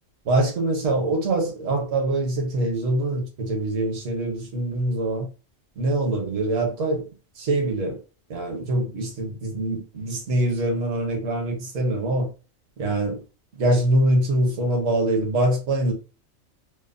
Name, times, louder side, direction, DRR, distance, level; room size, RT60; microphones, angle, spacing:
voice 1, 0.2-5.3 5.8-7.1 7.4-8.0 8.3-12.3 12.8-13.2 13.6-15.9, right 1 dB, 70° right, 1.2 m, -24 dB
3.0 x 2.0 x 2.5 m
omnidirectional pair, 1.4 m